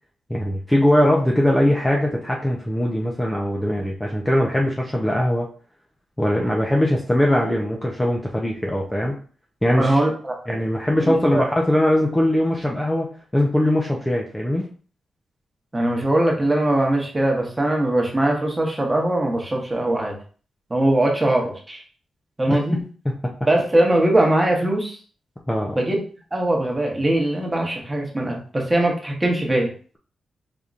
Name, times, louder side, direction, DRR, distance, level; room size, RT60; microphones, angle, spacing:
voice 1, 0.3-5.5 6.2-9.2 9.6-10.0 10.5-13.1 13.3-14.7 22.5-22.8 25.5-25.8, left 1 dB, 10° left, -1 dB, 0.5 m, -21 dB
voice 2, 9.8-10.3 11.1-11.4 15.7-20.2 20.7-21.8 22.4-22.8 23.5-25.0 25.8-26.0 26.3-29.7, right 1 dB, 15° right, 0 dB, 1.0 m, -21 dB
5.1 x 2.8 x 2.4 m, 0.41 s
wide cardioid pair, 135°, 0 cm